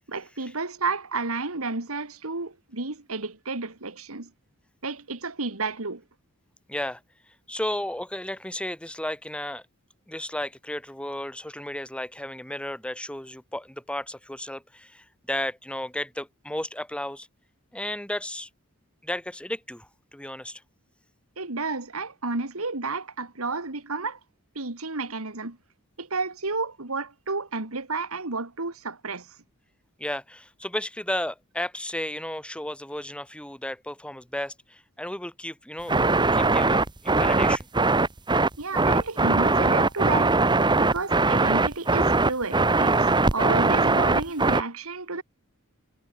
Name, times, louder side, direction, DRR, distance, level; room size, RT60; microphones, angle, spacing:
voice 1, 0.1-4.3 4.8-6.0 21.4-24.2 24.6-25.6 26.0-29.4 38.6-40.4 40.8-45.2, right 3 dB, 70° right, 2.4 m, -31 dB
voice 2, 6.7-7.0 7.5-9.6 10.1-17.3 17.7-18.5 19.0-20.6 30.0-36.0 36.3-37.7, left 1 dB, 5° left, 2.4 m, -33 dB
sound 1, 35.9-44.6, right 3 dB, 20° right, 1.2 m, -21 dB
head